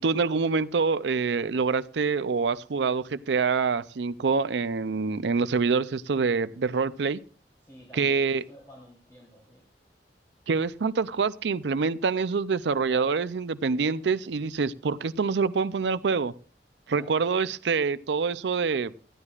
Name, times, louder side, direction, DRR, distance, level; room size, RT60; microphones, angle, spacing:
voice 1, 0.0-7.2 7.9-8.4 10.5-16.3 16.9-18.9, right 5 dB, 75° right, 0.5 m, -26 dB
voice 2, 7.6-9.6 12.8-13.2 13.7-14.1 16.9-17.2, equal, 15° left, 3.4 m, -50 dB
19.5 x 13.5 x 2.4 m
head